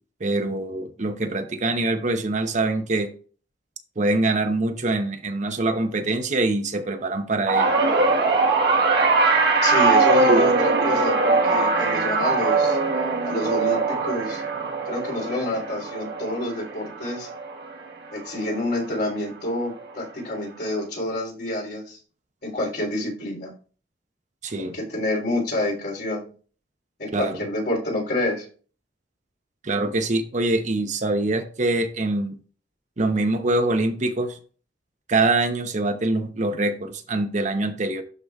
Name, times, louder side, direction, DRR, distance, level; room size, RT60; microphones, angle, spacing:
voice 1, 0.2-3.1 4.0-7.7 10.2-10.9 24.4-24.8 27.1-27.4 29.6-32.4 33.0-34.4 35.1-38.0, right 2 dB, 45° right, 0.8 m, -24 dB
sound 1, 7.5-17.9 18.2-18.7 19.8-19.9, right 3 dB, 65° right, 1.4 m, -21 dB
voice 2, 9.6-12.8 13.2-14.4 14.8-17.3 18.1-22.0 22.4-23.5 24.6-26.2 27.0-28.4, left 1 dB, 60° left, 3.3 m, -28 dB
11.5 x 4.9 x 2.4 m
head